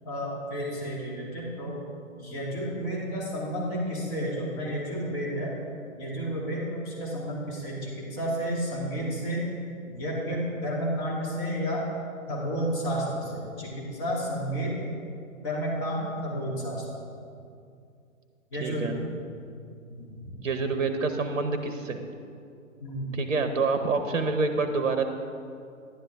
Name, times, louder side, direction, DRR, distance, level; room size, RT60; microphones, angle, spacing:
voice 1, 0.0-1.8 2.2-5.5 5.9-9.5 9.9-11.8 12.3-14.9 15.4-16.8 18.5-19.1 19.9-20.1 22.8-23.1, equal, 30° left, -5 dB, 2.7 m, -31 dB
voice 2, 18.6-18.9 20.4-22.0 23.1-25.0, right 4 dB, 65° right, 7 dB, 0.9 m, -27 dB
11.0 x 9.8 x 3.5 m, 2.4 s
figure-of-eight pair, 125°, 40 cm